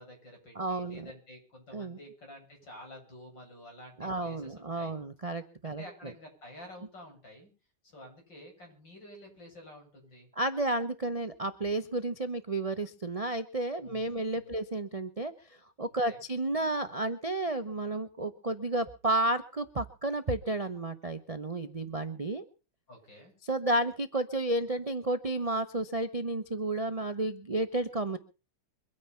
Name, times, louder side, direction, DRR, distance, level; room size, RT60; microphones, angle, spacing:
voice 1, 0.0-4.9 5.6-7.5 7.8-10.3 13.8-14.5 16.1-16.2 22.9-23.3, left 1 dB, 60° left, 1 dB, 8.6 m, -50 dB
voice 2, 0.5-1.1 1.7-2.0 4.0-6.1 10.4-22.4 23.4-28.2, right 2 dB, 35° right, 10 dB, 0.5 m, -32 dB
23.5 x 9.7 x 5.7 m, 0.36 s
omnidirectional pair, 2.2 m